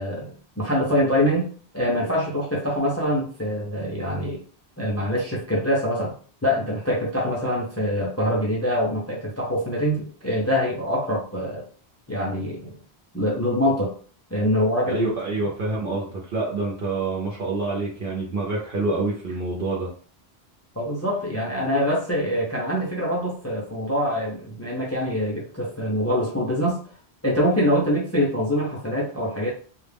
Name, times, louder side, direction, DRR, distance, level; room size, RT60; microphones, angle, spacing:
voice 1, 0.0-1.5 1.7-4.4 4.8-6.1 6.4-11.6 12.1-12.7 13.1-13.9 14.3-15.1 20.8-26.8 27.2-29.5, equal, 25° left, -2 dB, 0.4 m, -24 dB
voice 2, 14.9-19.9, right 3 dB, 65° right, -3 dB, 0.8 m, -27 dB
2.3 x 2.0 x 3.3 m, 0.43 s
omnidirectional pair, 1.1 m